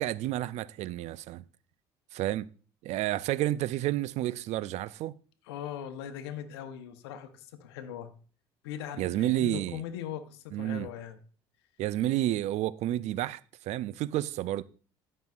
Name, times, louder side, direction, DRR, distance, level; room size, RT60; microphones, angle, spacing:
voice 1, 0.0-1.4 2.1-2.5 2.8-5.1 9.0-9.8 10.5-10.9 11.8-14.6, right 14 dB, 60° right, 0.4 m, -30 dB
voice 2, 5.5-8.1 8.6-11.2, left 10 dB, 90° left, 0.9 m, -40 dB
14.5 x 5.5 x 2.4 m
supercardioid pair, 75°, 13 cm